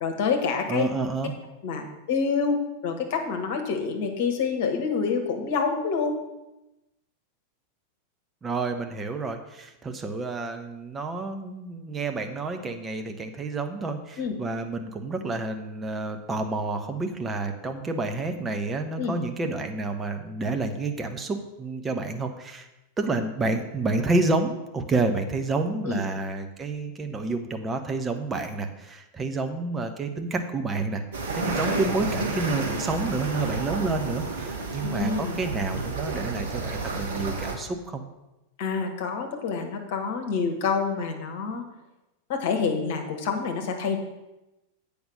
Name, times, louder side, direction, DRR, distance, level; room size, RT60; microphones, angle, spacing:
voice 1, 0.0-0.9 1.6-6.2 14.2-14.3 19.0-19.1 25.8-26.0 34.8-35.4 38.6-41.6 42.3-44.0, left 5 dB, 50° left, 5 dB, 1.4 m, -27 dB
voice 2, 0.7-1.3 8.4-22.7 23.0-31.0 31.3-38.0, right 3 dB, 20° right, 6 dB, 0.9 m, -29 dB
sound 1, 31.1-37.5, right 3 dB, 60° right, 1.5 m, -31 dB
8.0 x 5.2 x 6.4 m, 0.98 s
figure-of-eight pair, 90°, 0 cm